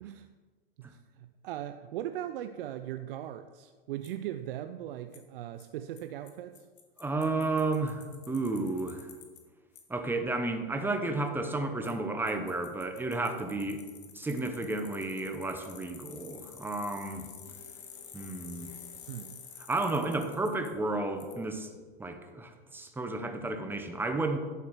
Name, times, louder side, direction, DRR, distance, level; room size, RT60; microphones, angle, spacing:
voice 1, 0.8-6.7 19.1-19.3, right 12 dB, 70° right, 9 dB, 0.5 m, -39 dB
Bicycle, 4.0-4.1 5.1-5.2 5.6-5.7 6.0-6.1 6.3-6.4 6.6-9.4 9.8-9.9 11.8-11.9 12.3-20.7 21.2-21.3, left 7 dB, 65° left, 1.6 m, -49 dB
voice 2, 7.0-9.1 9.9-13.8 14.1-17.3 18.1-18.7 19.7-21.7 22.0-24.4, right 2 dB, 5° right, 5 dB, 0.9 m, -32 dB
11.5 x 4.6 x 4.8 m, 1.4 s
hypercardioid pair, 115°, 29 cm